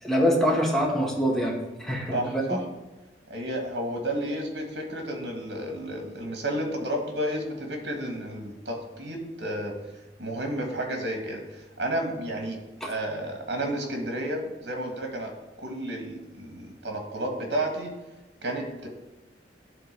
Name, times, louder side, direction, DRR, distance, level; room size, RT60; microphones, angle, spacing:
voice 1, 0.0-2.4, equal, ahead, -2 dB, 1.4 m, -24 dB
voice 2, 2.1-2.6 3.3-9.7 10.2-15.3 15.6-18.0 18.4-18.9, right 1 dB, 75° right, 3 dB, 1.8 m, -31 dB
9.9 x 3.8 x 5.3 m, 1.1 s
head